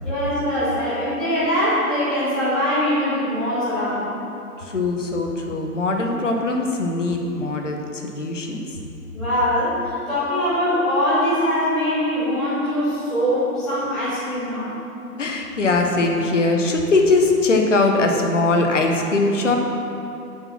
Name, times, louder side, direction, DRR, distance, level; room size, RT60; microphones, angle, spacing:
voice 1, 0.0-4.1 9.1-14.7, equal, ahead, -15 dB, 0.8 m, -22 dB
voice 2, 4.6-8.8 15.2-19.6, left 3 dB, 50° left, 2 dB, 1.1 m, -21 dB
6.8 x 5.9 x 6.1 m, 2.8 s
figure-of-eight pair, 140°, 47 cm